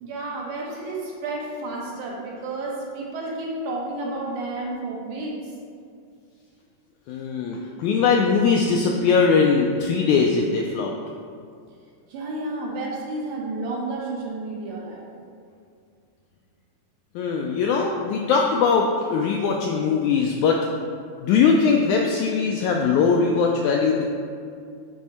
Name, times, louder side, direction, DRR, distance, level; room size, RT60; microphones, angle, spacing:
voice 1, 0.0-5.6 12.1-15.1, right 2 dB, 70° right, -3 dB, 2.3 m, -31 dB
voice 2, 7.1-10.9 17.2-20.6 21.2-24.1, left 5 dB, 85° left, 0 dB, 1.7 m, -21 dB
9.7 x 3.5 x 4.2 m, 2.3 s
omnidirectional pair, 3.9 m